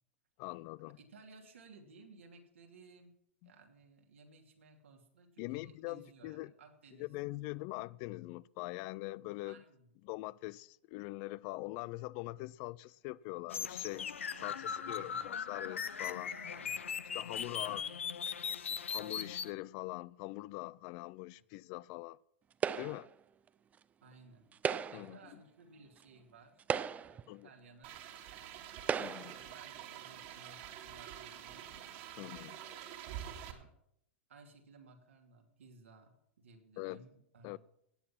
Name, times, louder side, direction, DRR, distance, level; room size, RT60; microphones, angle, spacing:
voice 1, 0.4-1.0 3.4-3.5 5.4-6.5 7.0-9.6 10.0-14.1 14.4-16.3 17.1-17.8 18.8-22.2 22.8-23.1 24.9-25.2 27.3-27.5 29.0-29.4 32.2-32.6 36.8-37.0 37.4-37.6, left 20 dB, 50° left, 0.4 m, -43 dB
voice 2, 1.0-3.1 3.4-7.1 9.4-9.9 14.3-15.3 16.0-16.9 17.4-18.0 21.3-21.4 24.0-24.5 24.9-26.6 26.9-28.0 29.2-30.6 30.9-31.7 33.1-33.7 34.3-37.6, right 3 dB, 85° right, 2.8 m, -59 dB
sound 1, 13.5-19.5, left 7 dB, 85° left, 0.7 m, -39 dB
sound 2, 22.6-23.1 24.5-25.2 26.0-26.1 26.6-27.3 28.1-28.2 28.8-29.4, right 7 dB, 20° right, 0.5 m, -35 dB
sound 3, 27.8-33.5, right 10 dB, 55° right, 2.4 m, -47 dB
17.0 x 8.5 x 5.8 m
hypercardioid pair, 110°, 7 cm